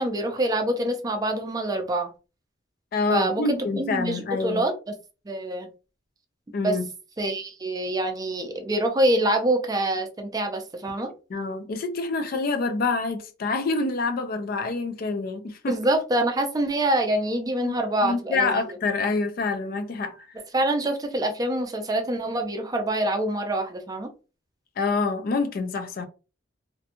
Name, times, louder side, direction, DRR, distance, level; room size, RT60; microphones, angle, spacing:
voice 1, 0.0-2.1 3.1-4.9 5.3-5.7 6.6-6.8 7.2-11.1 15.7-18.6 20.5-24.1, right 1 dB, 20° right, 0.4 m, -25 dB
voice 2, 2.9-4.6 6.5-6.9 11.3-15.8 17.6-17.7 18.0-20.3 24.8-26.1, left 3 dB, 50° left, 0.4 m, -26 dB
2.5 x 2.2 x 2.8 m
head